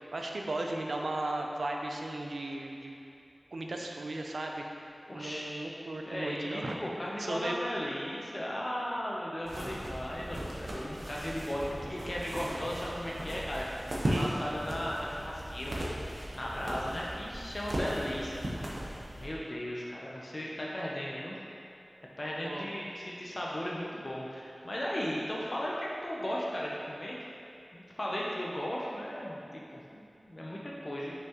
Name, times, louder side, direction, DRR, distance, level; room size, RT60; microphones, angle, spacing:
voice 1, 0.1-2.9 3.5-4.6 5.1-6.8 7.2-7.5 14.0-14.3 22.4-22.7, right 2 dB, 90° right, 1 dB, 0.5 m, -36 dB
voice 2, 5.1-5.7 6.0-15.9 16.3-18.8 19.2-21.4 22.2-27.2 27.7-31.1, equal, 40° left, -4 dB, 0.8 m, -36 dB
sound 1, 9.4-19.3, right 1 dB, 70° right, 0.9 m, -37 dB
5.9 x 5.6 x 3.0 m, 2.7 s
wide cardioid pair, 70°, 0 cm